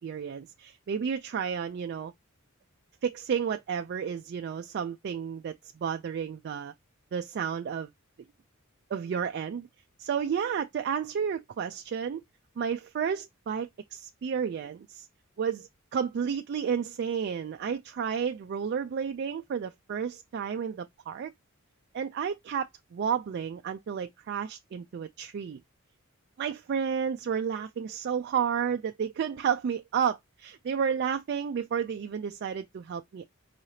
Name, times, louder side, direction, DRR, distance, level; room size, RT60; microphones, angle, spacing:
voice 1, 0.0-2.1 3.0-6.7 7.1-7.9 8.9-9.7 10.0-12.2 12.6-15.1 15.4-21.3 21.9-25.6 26.4-33.3, right 7 dB, 50° right, 0.3 m, -31 dB
4.7 x 3.2 x 2.7 m
head